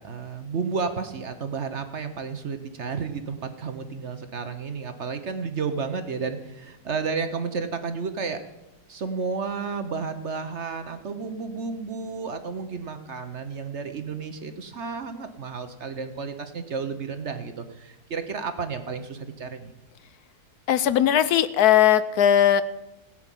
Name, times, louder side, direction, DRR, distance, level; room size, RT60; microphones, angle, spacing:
voice 1, 0.0-8.4 8.9-19.7, right 5 dB, 50° right, 9 dB, 1.1 m, -32 dB
voice 2, 20.7-22.6, left 10 dB, 75° left, 14 dB, 1.2 m, -19 dB
18.0 x 6.0 x 9.0 m, 0.99 s
omnidirectional pair, 1.7 m